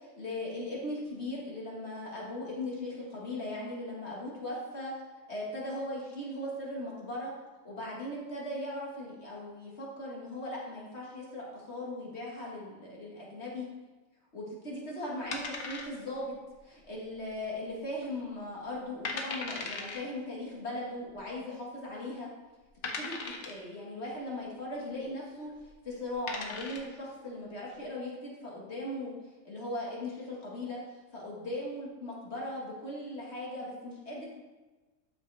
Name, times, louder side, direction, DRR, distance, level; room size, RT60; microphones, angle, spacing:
voice 1, 0.0-4.9 5.3-7.3 7.6-13.7 14.3-16.3 16.6-22.3 23.0-25.5 25.8-29.1 29.4-30.8 31.1-34.3, left 1 dB, 50° left, -4 dB, 2.1 m, -38 dB
sound 1, 15.3-16.3 16.5-16.6 17.2-17.7 18.0-18.1 18.7-18.8 19.1-20.0 21.1-21.2 21.9-22.0 22.8-23.7 25.5-25.7 26.1-27.0, left 4 dB, 90° left, 1.5 m, -38 dB
12.5 x 6.0 x 3.4 m, 1.2 s
omnidirectional pair, 1.5 m